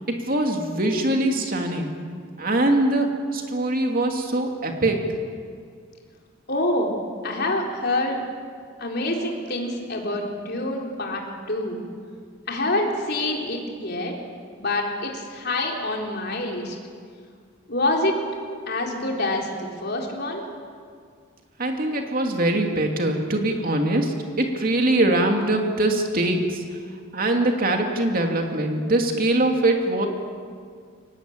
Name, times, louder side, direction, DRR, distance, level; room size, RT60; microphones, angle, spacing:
voice 1, 0.3-1.9 2.4-3.1 3.3-5.1 21.6-26.6 27.1-30.1, right 1 dB, 45° right, 3 dB, 2.8 m, -22 dB
voice 2, 6.5-8.2 8.8-11.2 11.5-11.8 12.5-14.1 14.6-16.8 17.7-18.2 18.7-20.4, left 1 dB, 50° left, 0 dB, 4.1 m, -26 dB
23.5 x 19.0 x 8.8 m, 2.1 s
head